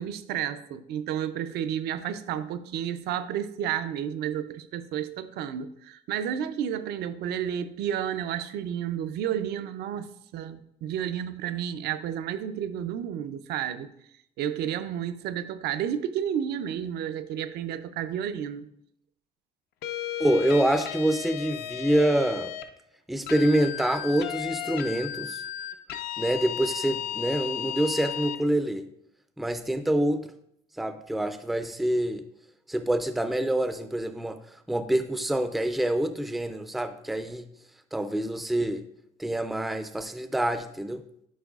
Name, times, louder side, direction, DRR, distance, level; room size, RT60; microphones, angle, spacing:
voice 1, 0.0-13.9 14.4-18.7, right 9 dB, 75° right, 12 dB, 0.5 m, -31 dB
sound 1, 19.8-22.7 23.3-28.4, left 11 dB, 70° left, 0.5 m, -34 dB
voice 2, 20.2-22.5 23.1-25.4 26.2-28.8 29.4-30.3 30.8-32.2 32.7-34.4 34.7-37.5 37.9-38.8 39.2-41.0, right 1 dB, ahead, 9 dB, 0.3 m, -26 dB
10.0 x 4.6 x 2.4 m, 0.74 s
cardioid pair, 110°, 17 cm